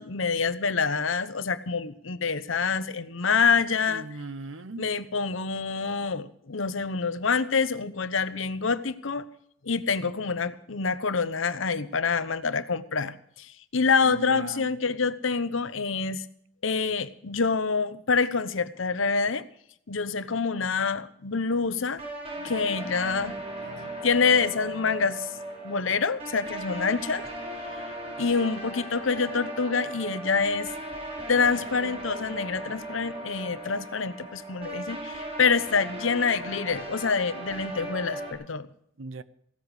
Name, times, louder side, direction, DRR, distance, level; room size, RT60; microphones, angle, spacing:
voice 1, 0.0-4.1 4.8-9.3 9.6-16.2 16.6-19.4 19.9-22.0 22.4-25.3 25.6-27.2 28.2-30.7 31.3-38.7, left 5 dB, 80° left, 0.9 m, -26 dB
voice 2, 3.9-4.9 14.0-14.7 39.0-39.2, right 3 dB, 85° right, 0.8 m, -38 dB
sound 1, 22.0-38.3, right 1 dB, 30° right, 4.5 m, -37 dB
16.5 x 13.0 x 4.9 m
head